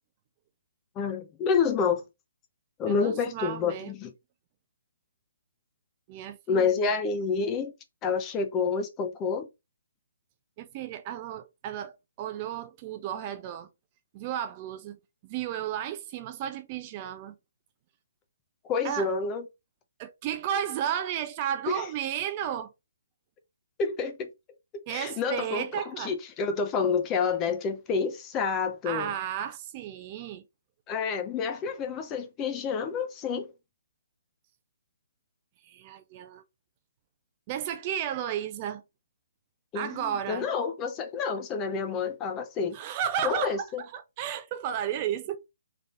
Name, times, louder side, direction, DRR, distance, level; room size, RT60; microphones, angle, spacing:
voice 1, 1.0-2.0 2.8-4.1 6.5-7.7 8.0-9.5 18.7-19.4 21.7-21.9 23.8-24.3 24.7-29.1 30.9-33.5 39.7-42.8 43.2-43.8, left 5 dB, 20° left, 0.7 m, -28 dB
voice 2, 2.9-3.9 6.1-6.9 10.6-13.7 14.1-17.4 18.8-19.1 20.0-22.7 24.9-26.1 28.8-30.4 35.6-36.4 37.5-38.8 39.7-40.5 42.7-45.4, right 10 dB, 30° right, 0.5 m, -33 dB
3.5 x 3.4 x 3.8 m
figure-of-eight pair, 140°, 0 cm